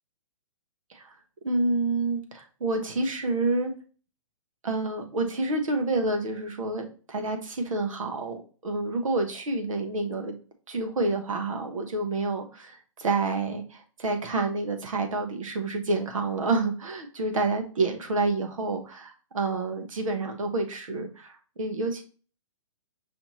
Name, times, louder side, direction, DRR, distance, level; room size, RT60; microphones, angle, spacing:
voice 1, 1.4-3.7 4.6-10.4 10.7-22.0, right 3 dB, 85° right, 4 dB, 1.2 m, -28 dB
5.6 x 2.8 x 2.9 m, 0.39 s
hypercardioid pair, 140°, 17 cm